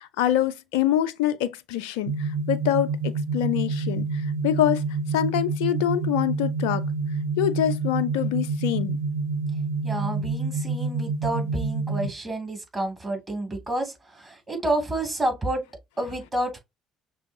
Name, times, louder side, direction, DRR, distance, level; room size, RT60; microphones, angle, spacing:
voice 1, 0.0-4.8 5.1-6.8 7.4-9.0, left 11 dB, 70° left, 0.4 m, -25 dB
sound 1, 2.1-12.1, right 4 dB, 85° right, 0.8 m, -28 dB
voice 2, 9.8-15.6 16.0-16.6, right 1 dB, 25° right, 2.9 m, -29 dB
6.0 x 3.0 x 2.8 m
figure-of-eight pair, 50°, 0 cm